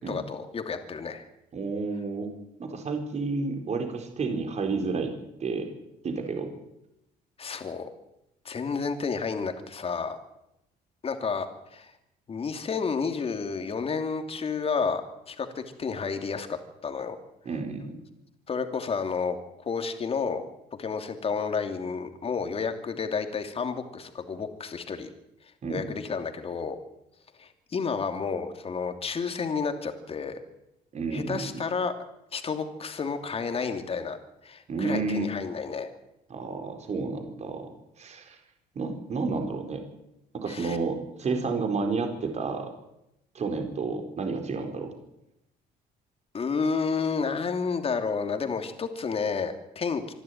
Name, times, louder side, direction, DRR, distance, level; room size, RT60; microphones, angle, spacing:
voice 1, 0.1-1.2 7.4-7.9 8.4-10.2 11.0-11.5 11.7-11.9 12.3-17.2 18.5-20.4 20.8-25.1 25.7-26.8 27.4-30.4 31.1-31.9 32.3-34.2 34.4-35.9 40.5-40.8 46.3-50.0, left 5 dB, 35° left, 7 dB, 2.9 m, -31 dB
voice 2, 1.5-2.3 2.6-5.1 5.4-5.7 6.0-6.5 17.4-18.0 25.6-25.8 30.9-31.6 34.7-35.3 36.3-37.7 38.0-38.4 38.7-39.8 40.3-42.7 43.3-44.9, right 4 dB, 40° right, 5 dB, 4.3 m, -30 dB
26.0 x 12.5 x 9.4 m, 0.85 s
cardioid pair, 110°, 17 cm